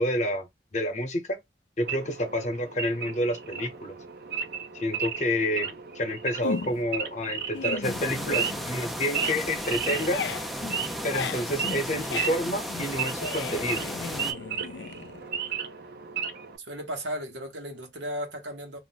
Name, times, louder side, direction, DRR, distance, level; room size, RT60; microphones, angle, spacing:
voice 1, 0.0-1.4 1.8-4.0 4.7-10.3 11.0-13.8, left 1 dB, 40° left, 0.8 m, -29 dB
Wild animals / Idling, 1.8-16.6, right 7 dB, 55° right, 0.5 m, -35 dB
sound 1, 6.4-7.0 7.4-8.7 9.0-15.5, left 5 dB, 75° left, 0.4 m, -37 dB
sound 2, 7.8-14.3, equal, ahead, 0.3 m, -35 dB
voice 2, 16.6-18.8, equal, 80° right, 1.0 m, -35 dB
2.5 x 2.1 x 3.9 m
head